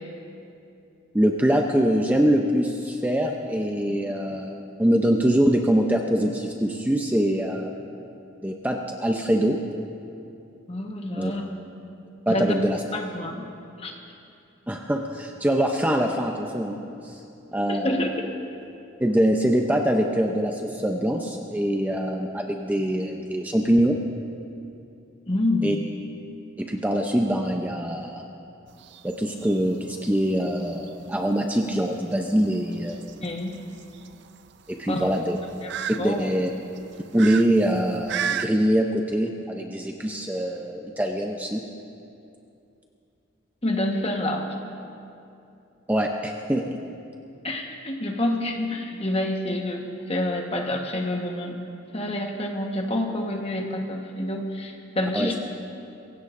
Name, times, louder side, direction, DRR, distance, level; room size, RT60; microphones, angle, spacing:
voice 1, 1.1-7.7 8.4-9.6 11.2-11.3 12.3-12.8 14.7-17.2 17.5-18.1 19.0-24.0 25.6-25.8 26.6-28.2 29.0-33.1 34.7-35.4 36.0-36.5 37.1-41.7 45.9-46.8 55.1-55.3, equal, 10° right, 2 dB, 0.5 m, -24 dB
voice 2, 10.7-11.4 12.3-12.5 12.9-13.5 13.8-13.9 17.7-18.1 25.3-25.8 33.2-33.6 34.9-35.1 35.6-35.7 36.0-36.3 43.6-44.4 47.4-51.6 51.9-55.4, left 1 dB, 30° left, 2 dB, 1.2 m, -27 dB
sound 1, 28.7-38.5, right 8 dB, 55° right, 0.4 m, -36 dB
24.5 x 16.5 x 2.6 m, 2.7 s
head